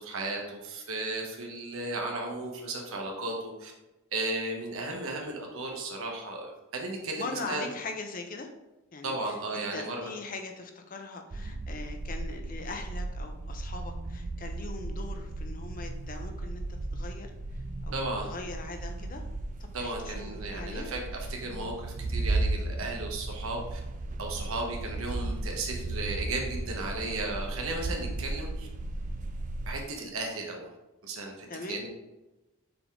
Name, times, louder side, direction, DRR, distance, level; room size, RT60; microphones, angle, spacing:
voice 1, 0.0-3.7 4.1-7.7 9.0-10.1 17.9-18.3 19.7-23.8 24.2-28.7 29.7-30.7 31.0-31.9, right 2 dB, 70° right, 0 dB, 1.0 m, -35 dB
voice 2, 7.1-8.5 8.9-16.6 16.9-19.2 19.6-20.9 31.5-31.8, left 3 dB, 40° left, 4 dB, 0.6 m, -41 dB
sound 1, 11.3-29.8, right 2 dB, 35° right, 0.4 m, -35 dB
6.9 x 3.8 x 3.6 m, 1.0 s
head